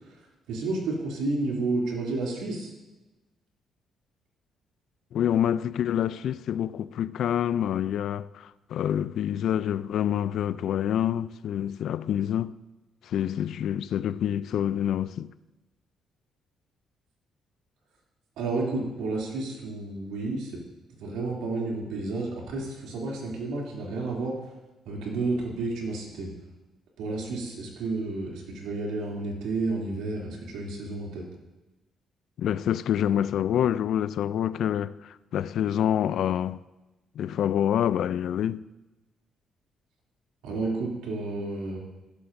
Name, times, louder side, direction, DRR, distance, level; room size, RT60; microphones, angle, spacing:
voice 1, 0.5-2.7 18.4-20.5 21.0-24.4 24.9-26.3 27.0-31.2 40.4-41.8, right 3 dB, 90° right, 2.8 m, -31 dB
voice 2, 5.1-12.6 13.0-15.3 32.4-36.6 37.2-38.6, left 10 dB, 75° left, 0.3 m, -27 dB
15.0 x 13.0 x 2.6 m
cardioid pair, 90°, 0 cm